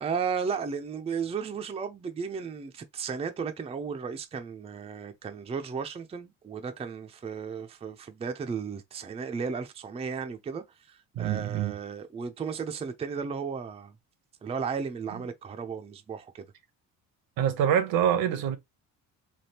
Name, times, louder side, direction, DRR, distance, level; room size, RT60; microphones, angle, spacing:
voice 1, 0.0-14.0 14.4-16.5, right 6 dB, 15° right, 0.4 m, -34 dB
voice 2, 11.1-11.7 15.1-15.2 17.4-18.6, right 9 dB, 75° right, 0.8 m, -25 dB
3.5 x 2.3 x 2.8 m
cardioid pair, 110°, 36 cm